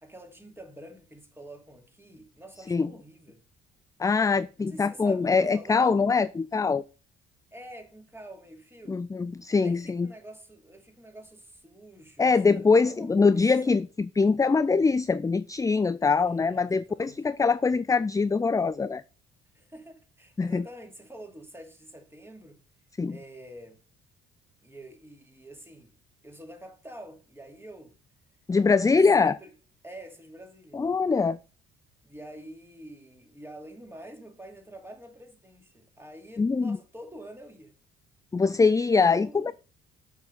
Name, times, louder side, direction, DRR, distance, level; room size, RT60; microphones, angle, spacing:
voice 1, 0.0-3.4 4.6-6.1 7.5-9.1 9.6-13.8 16.1-17.2 19.5-22.6 23.1-23.8 24.6-25.9 26.2-27.9 29.2-29.5 29.8-30.8 32.0-37.7 39.0-39.5, right 1 dB, 10° right, 2.7 m, -47 dB
voice 2, 4.0-6.8 8.9-10.1 12.2-19.0 20.4-20.6 23.0-23.2 28.5-29.4 30.7-31.4 36.4-36.8 38.3-39.5, left 4 dB, 10° left, 0.4 m, -23 dB
7.1 x 5.8 x 5.5 m
hypercardioid pair, 50°, 30 cm